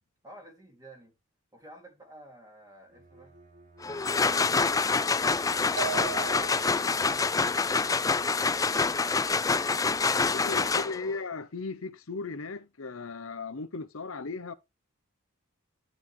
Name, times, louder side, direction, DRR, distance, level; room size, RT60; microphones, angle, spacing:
voice 1, 0.2-1.1 1.5-3.3 3.8-5.5, right 1 dB, 20° right, 3.7 m, -53 dB
Bowed string instrument, 2.8-6.9, right 2 dB, 40° right, 2.9 m, -57 dB
sound 1, 3.8-11.2, left 4 dB, 15° left, 0.4 m, -26 dB
sound 2, 5.8-7.0, right 9 dB, 75° right, 0.4 m, -36 dB
voice 2, 10.3-14.5, left 4 dB, 75° left, 0.8 m, -36 dB
12.0 x 4.0 x 4.7 m
head